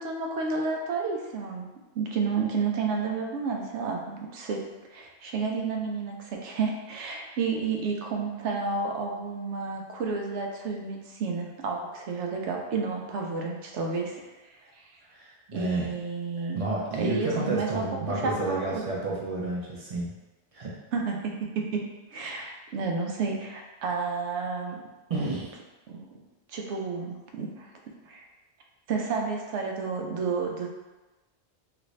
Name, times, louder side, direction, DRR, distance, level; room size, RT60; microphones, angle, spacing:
voice 1, 0.0-1.7 1.9-4.6 4.9-14.2 14.7-15.0 15.5-16.6 17.0-18.8 20.9-21.8 22.1-24.8 25.2-25.3 25.9-26.1 26.5-27.7 28.1-28.2 28.9-30.7, right 4 dB, 90° right, 1 dB, 0.9 m, -31 dB
voice 2, 15.1-15.9 16.5-20.1 20.5-20.7 25.1-25.5, right 2 dB, 40° right, -5 dB, 0.6 m, -30 dB
3.2 x 2.5 x 3.1 m, 1.1 s
omnidirectional pair, 1.1 m